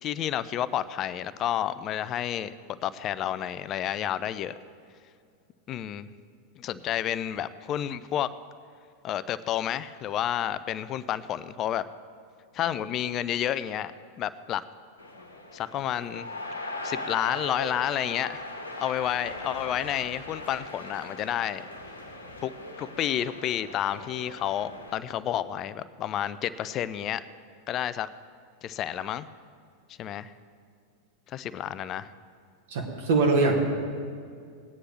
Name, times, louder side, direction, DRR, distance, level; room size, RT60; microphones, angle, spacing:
voice 1, 0.0-2.5 2.8-4.5 5.7-6.1 6.6-8.3 9.0-11.8 12.5-13.9 14.2-14.6 15.5-16.3 16.8-18.4 18.8-21.6 22.4-22.5 22.8-27.2 27.7-28.1 28.6-29.3 30.0-30.3 31.3-32.1, left 11 dB, 30° left, 15 dB, 0.4 m, -30 dB
sound 1, 15.0-25.0, left 2 dB, 80° left, 1.2 m, -39 dB
voice 2, 32.7-33.6, right 3 dB, 55° right, 1 dB, 1.6 m, -22 dB
18.0 x 9.6 x 3.2 m, 2.3 s
figure-of-eight pair, 90°, 0 cm